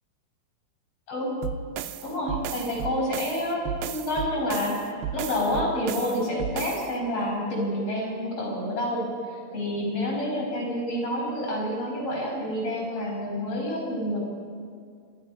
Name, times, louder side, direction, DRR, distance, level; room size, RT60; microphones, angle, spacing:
voice 1, 1.1-1.4 2.0-4.8 5.1-14.3, left 1 dB, 35° left, -1 dB, 6.5 m, -28 dB
sound 1, 1.4-6.9, right 8 dB, 85° right, 2.9 m, -34 dB
26.0 x 25.0 x 5.5 m, 2.2 s
omnidirectional pair, 4.7 m